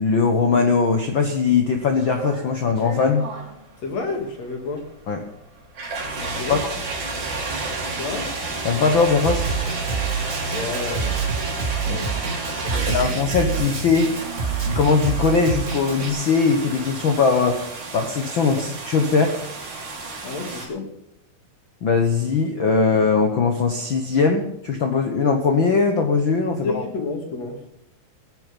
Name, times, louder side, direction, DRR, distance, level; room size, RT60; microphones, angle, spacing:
voice 1, 0.0-3.3 5.1-5.2 6.5-6.6 8.6-9.4 11.9-12.1 12.9-14.2 14.7-17.6 17.9-19.4 21.8-26.8, left 5 dB, 85° left, 4 dB, 1.0 m, -20 dB
sound 1, 1.7-20.7, right 3 dB, 55° right, 4.7 m, -32 dB
voice 2, 3.8-4.8 6.2-6.6 8.0-8.3 10.5-11.2 11.8-12.2 12.6-13.2 18.5-18.7 20.2-20.9 26.5-27.6, left 3 dB, 50° left, 3 dB, 3.3 m, -30 dB
Snare drum, 9.2-16.1, right 6 dB, 35° right, 1.3 m, -27 dB
17.0 x 9.6 x 5.2 m, 0.83 s
omnidirectional pair, 4.1 m